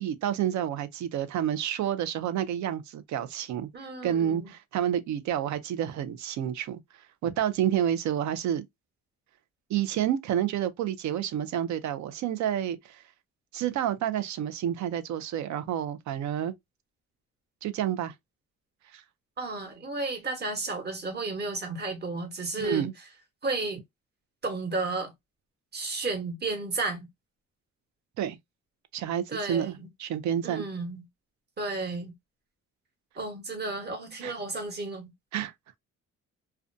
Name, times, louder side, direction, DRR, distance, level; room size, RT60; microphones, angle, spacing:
voice 1, 0.0-3.7 4.0-6.8 7.2-8.6 9.7-13.0 13.5-16.5 17.6-18.1 18.9-19.0 22.6-22.9 28.2-28.4 28.9-30.6 34.2-34.3 35.3-35.5, right 10 dB, 70° right, 0.5 m, -29 dB
voice 2, 3.7-4.5 19.4-22.9 23.4-23.8 24.4-25.1 25.7-27.1 29.3-29.9 30.4-31.0 31.6-32.1 33.2-35.1, right 3 dB, 35° right, 1.1 m, -33 dB
2.4 x 2.2 x 2.5 m
cardioid pair, 90°, 30 cm